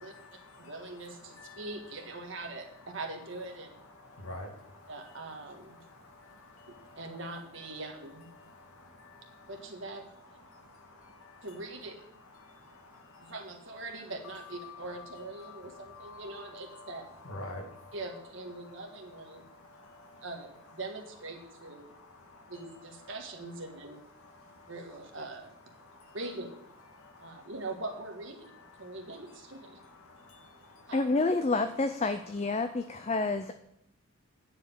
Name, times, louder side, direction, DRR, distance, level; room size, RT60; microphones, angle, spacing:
voice 1, 0.0-2.0 2.8-2.9 3.9-7.2 7.7-7.8 8.3-9.7 10.3-11.9 12.3-13.4 14.6-18.0 18.5-20.3 21.4-23.1 23.7-23.9 24.1-24.8 25.7-26.2 26.9-27.5 28.4-31.0 32.7-33.1, left 2 dB, 75° left, 2 dB, 2.0 m, -51 dB
voice 2, 0.6-3.8 4.9-5.8 6.7-8.3 9.5-10.1 11.4-12.0 13.2-17.1 17.9-19.4 20.2-21.9 22.5-24.0 24.7-25.5 26.1-26.6 27.2-28.5 28.8-29.8 30.9-31.1, right 2 dB, 55° right, 3 dB, 1.7 m, -42 dB
voice 3, 30.9-33.5, left 3 dB, 30° left, 9 dB, 0.4 m, -29 dB
9.8 x 5.1 x 8.0 m, 0.75 s
head